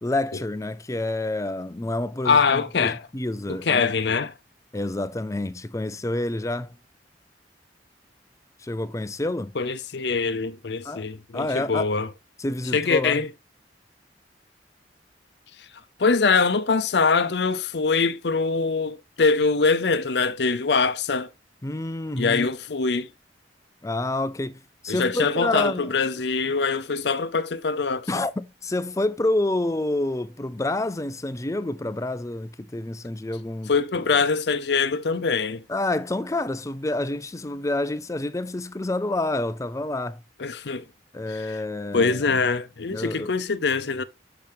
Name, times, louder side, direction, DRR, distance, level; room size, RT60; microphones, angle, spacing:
voice 1, 0.0-4.2 4.7-6.8 8.6-9.5 10.8-11.1 11.3-11.9 12.4-13.2 21.6-22.5 23.8-25.9 28.1-33.7 35.7-40.2 41.1-42.4 42.9-43.3, left 2 dB, 20° left, 0.5 m, -28 dB
voice 2, 2.2-3.0 3.5-4.3 9.5-12.1 12.7-13.3 16.0-21.3 22.2-23.1 24.9-28.2 33.7-35.6 40.4-40.8 41.3-41.6 41.9-44.0, left 4 dB, 70° left, 0.7 m, -23 dB
7.5 x 6.0 x 3.5 m
head